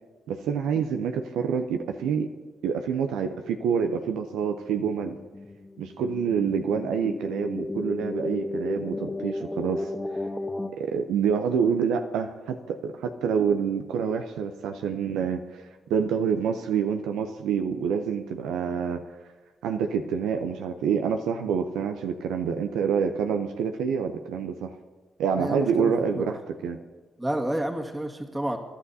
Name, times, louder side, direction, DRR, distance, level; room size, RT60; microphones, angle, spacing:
voice 1, 0.3-2.3 2.6-5.2 5.8-9.9 10.7-15.6 15.9-19.0 19.6-24.7 25.2-26.4 26.6-26.8, right 7 dB, 75° right, 6 dB, 0.6 m, -27 dB
sound 1, 4.3-10.7, left 2 dB, 25° left, 1.2 m, -34 dB
voice 2, 25.3-26.4 27.2-28.6, right 1 dB, 15° right, 2 dB, 1.9 m, -30 dB
28.0 x 11.5 x 2.8 m, 1.4 s
hypercardioid pair, 45°, 0 cm